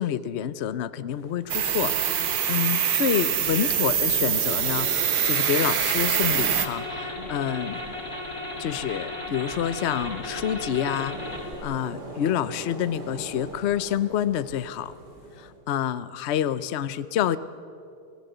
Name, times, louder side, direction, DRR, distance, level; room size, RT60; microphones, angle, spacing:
voice 1, 0.0-7.8 8.6-11.2 11.6-14.9 15.4-17.4, left 10 dB, 75° left, 15 dB, 0.6 m, -28 dB
sound 1, 1.1-15.5, right 1 dB, 60° right, 4.1 m, -41 dB
sound 2, 1.5-6.7, right 8 dB, 75° right, 2.0 m, -24 dB
sound 3, 6.2-11.5, left 1 dB, 30° left, 4.1 m, -35 dB
28.5 x 18.0 x 7.9 m, 2.6 s
omnidirectional pair, 2.0 m